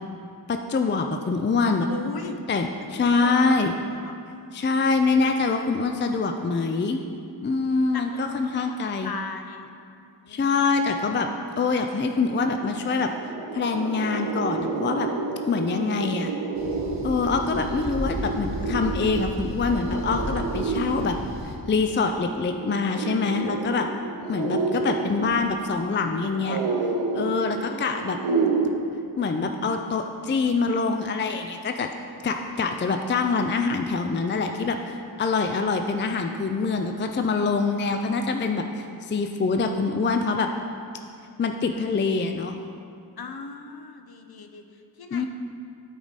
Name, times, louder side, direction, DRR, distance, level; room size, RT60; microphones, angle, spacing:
voice 1, 0.5-1.9 2.5-3.7 4.5-7.0 7.4-9.1 10.3-11.3 11.6-13.1 13.5-15.1 15.5-16.3 17.0-21.2 21.4-23.9 24.3-26.6 27.1-28.2 29.2-31.9 32.2-40.5 41.4-42.5 45.1-45.3, left 4 dB, 25° left, 5 dB, 0.4 m, -25 dB
voice 2, 1.9-2.4 2.9-4.1 5.1-5.4 7.9-9.7 10.2-10.9 27.5-28.1 43.2-45.3, left 4 dB, 55° left, 6 dB, 0.8 m, -39 dB
sound 1, 12.1-12.2 12.5-28.7, right 4 dB, 85° right, 0.8 m, -30 dB
sound 2, 16.6-21.6, equal, 40° right, 1.2 m, -34 dB
12.0 x 5.0 x 4.1 m, 2.4 s
cardioid pair, 70°, 45 cm